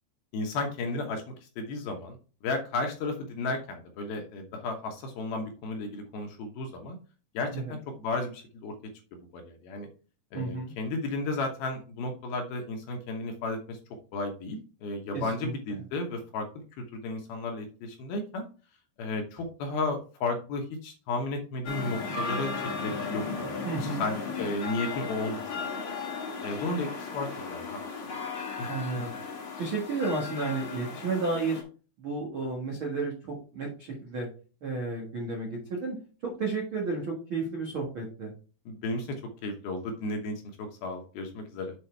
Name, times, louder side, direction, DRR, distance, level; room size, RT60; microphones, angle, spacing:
voice 1, 0.3-2.2 2.4-7.0 7.3-8.7 9.1-9.9 10.3-13.8 14.1-18.4 19.0-22.5 22.8-25.4 25.7-25.8 26.4-27.8 28.6-28.7 38.7-41.7, left 2 dB, 70° left, 3 dB, 2.6 m, -34 dB
voice 2, 10.3-10.7 15.1-15.8 23.6-24.0 28.7-29.1 29.6-31.6 32.0-34.3 34.6-35.9 36.2-38.3, right 3 dB, 85° right, -1 dB, 1.1 m, -32 dB
sound 1, 21.6-31.6, left 4 dB, 55° left, 1.5 m, -36 dB
8.2 x 4.3 x 4.5 m, 0.37 s
omnidirectional pair, 5.1 m